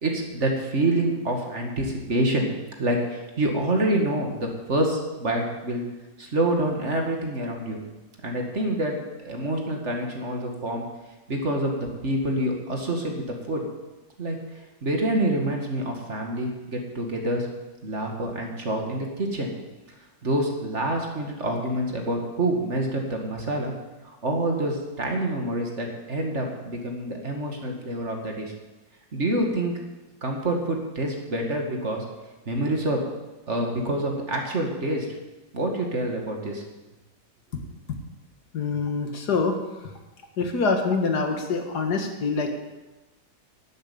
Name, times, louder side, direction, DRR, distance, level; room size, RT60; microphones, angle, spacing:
voice 1, 0.0-2.5 2.8-5.8 6.2-7.8 8.2-10.9 11.3-13.6 14.2-14.4 14.8-17.5 17.8-19.5 20.2-23.7 24.2-28.5 29.1-29.7 30.2-32.0 32.5-33.0 33.5-35.1 35.5-36.6, right 1 dB, 45° right, 1 dB, 2.3 m, -27 dB
voice 2, 38.5-39.6 40.4-42.5, left 4 dB, 90° left, 4 dB, 2.2 m, -25 dB
12.0 x 8.1 x 8.6 m, 1.1 s
omnidirectional pair, 1.7 m